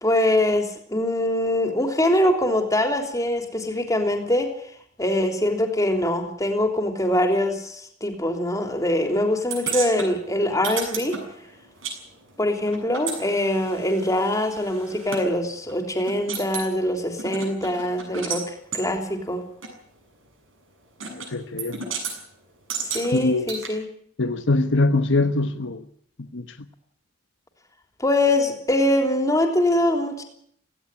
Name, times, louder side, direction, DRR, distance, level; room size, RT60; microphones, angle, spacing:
voice 1, 0.0-4.5 5.0-11.2 12.4-19.4 22.9-23.8 28.0-30.2, left 1 dB, 15° left, 3.4 m, -23 dB
sound 1, 9.5-12.0 12.2-15.2 15.7-15.8 16.1-16.7 17.2-18.4 18.7-18.9 19.6-19.7 21.0-21.3 21.6-22.2 22.7-23.7, right 5 dB, 75° right, 7.4 m, -32 dB
voice 2, 21.1-21.8 23.1-23.5 24.2-25.8 26.3-26.4, left 2 dB, 65° left, 1.1 m, -23 dB
17.0 x 16.5 x 10.0 m
head